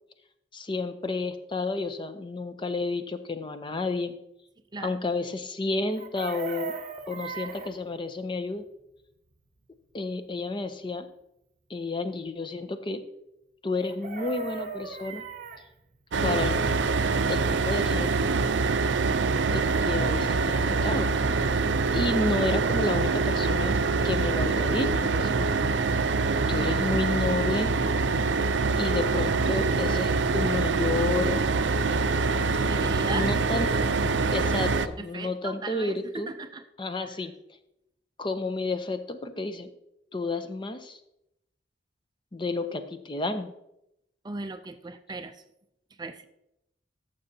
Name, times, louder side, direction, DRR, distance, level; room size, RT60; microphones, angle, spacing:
voice 1, 0.5-4.2 4.8-6.7 7.1-8.6 9.9-11.1 11.7-13.0 13.6-15.2 16.2-16.6 17.3-18.1 19.3-21.1 21.3-21.6 21.9-25.6 26.5-27.7 28.8-31.5 31.8-31.9 33.1-33.7 34.3-36.3 36.8-37.3 38.2-39.7 40.1-41.0 42.3-43.5, left 3 dB, 25° left, 9 dB, 0.6 m, -31 dB
Chicken rooster, 5.9-7.7 13.8-15.6 17.9-18.0 18.2-18.5, right 5 dB, 45° right, 0.8 m, -38 dB
sound 1, 16.1-34.9, right 4 dB, 85° right, 0.5 m, -25 dB
voice 2, 32.6-33.7 35.0-36.6 37.0-37.1 44.2-45.4 46.0-46.3, right 3 dB, 25° right, 9 dB, 0.4 m, -37 dB
14.5 x 6.8 x 2.8 m, 0.83 s
head